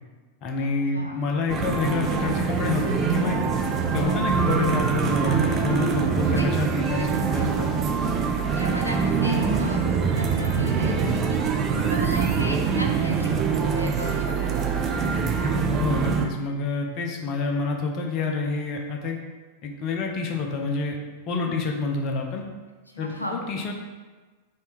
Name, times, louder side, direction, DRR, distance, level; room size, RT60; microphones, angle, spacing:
voice 1, 0.4-3.4 3.8-7.7 15.7-19.2 19.6-21.0 21.3-22.5 23.0-23.7, left 4 dB, 35° left, 2 dB, 0.7 m, -28 dB
voice 2, 0.9-1.2 6.2-6.5 6.9-7.1 7.4-7.5 8.4-15.4 21.4-21.7 22.9-23.4, equal, 90° left, 0 dB, 0.5 m, -36 dB
sound 1, 1.5-16.3, right 5 dB, 30° right, 0.4 m, -24 dB
sound 2, 5.3-15.0, right 1 dB, 60° right, 0.8 m, -41 dB
Bass guitar, 10.5-15.1 15.8-16.8, right 3 dB, 75° right, 1.2 m, -38 dB
4.1 x 3.6 x 3.4 m, 1.3 s
figure-of-eight pair, 90°, 0 cm